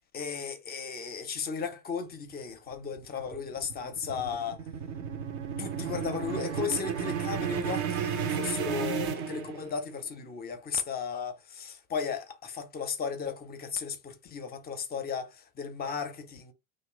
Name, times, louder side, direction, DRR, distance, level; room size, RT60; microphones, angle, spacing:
voice 1, 0.1-4.6 5.6-16.5, left 6 dB, 20° left, 0.5 m, -35 dB
sound 1, 2.7-10.0, right 8 dB, 35° right, 0.4 m, -33 dB
2.8 x 2.1 x 3.2 m
figure-of-eight pair, 65°, 46 cm